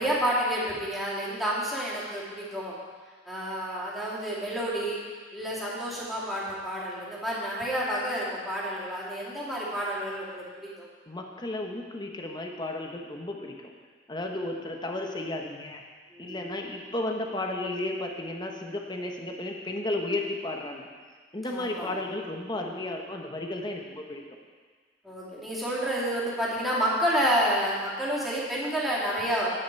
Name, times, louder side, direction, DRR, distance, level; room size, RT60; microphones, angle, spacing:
voice 1, 0.0-2.7 3.3-5.0 5.3-10.4 16.1-16.4 21.5-21.9 25.0-29.5, equal, ahead, -8 dB, 2.7 m, -29 dB
voice 2, 11.1-13.7 14.1-15.8 16.2-20.9 21.3-24.2, left 2 dB, 25° left, 2 dB, 1.1 m, -33 dB
9.7 x 9.5 x 4.7 m, 1.5 s
head